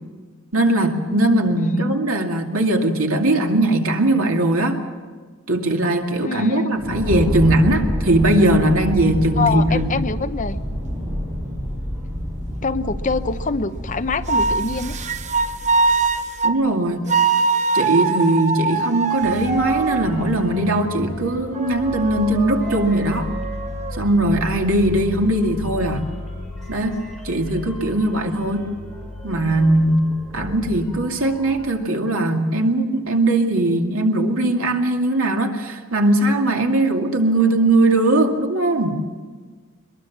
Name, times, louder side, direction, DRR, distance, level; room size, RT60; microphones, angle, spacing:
voice 1, 0.5-4.8 5.5-10.0 16.4-17.1 17.7-23.3 23.9-26.1 26.7-28.7 29.2-39.0, right 1 dB, 85° right, 3 dB, 2.4 m, -19 dB
voice 2, 1.6-2.0 6.2-6.8 9.4-10.6 12.6-15.0, left 3 dB, 40° left, 10 dB, 0.8 m, -25 dB
sound 1, 6.8-16.4, equal, 15° right, 6.1 m, -28 dB
sound 2, 9.0-9.6 14.3-16.6 17.1-20.1 20.7-24.0, right 4 dB, 35° right, 0.9 m, -23 dB
sound 3, 19.2-31.7, left 1 dB, 5° left, 5.9 m, -34 dB
22.5 x 22.0 x 7.2 m, 1.5 s
head